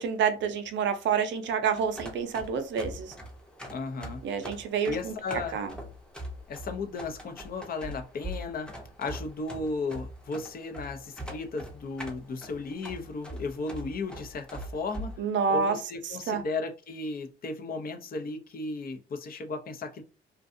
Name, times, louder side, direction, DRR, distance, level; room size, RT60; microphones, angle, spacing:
voice 1, 0.0-3.1 4.2-5.1 5.5-5.7 15.2-15.8 16.3-16.4, right 6 dB, 70° right, 0.5 m, -28 dB
sound 1, 1.7-15.2, equal, 5° left, 0.7 m, -42 dB
voice 2, 3.7-4.2 4.9-5.6 6.5-15.1 15.5-20.0, left 3 dB, 50° left, 0.6 m, -35 dB
2.5 x 2.3 x 2.5 m
cardioid pair, 90°, 20 cm